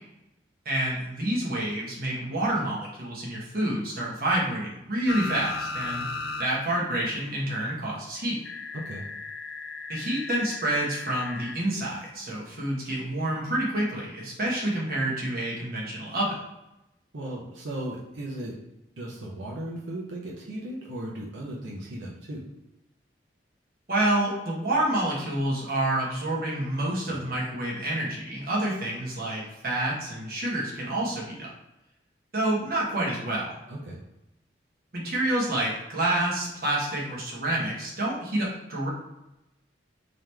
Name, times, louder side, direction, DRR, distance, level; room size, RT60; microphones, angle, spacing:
voice 1, 0.6-6.1 6.4-8.4 9.9-16.4 23.9-31.5 32.3-33.6 34.9-38.9, right 1 dB, 50° right, -4 dB, 1.2 m, -28 dB
sound 1, 5.1-6.5 6.8-6.9 8.4-11.6 13.3-13.4, left 3 dB, 60° left, 0.3 m, -36 dB
voice 2, 17.1-18.5 19.0-22.4 27.1-27.2 33.7-34.0, right 1 dB, 90° right, -4 dB, 0.8 m, -36 dB
3.8 x 3.1 x 3.3 m, 0.93 s
head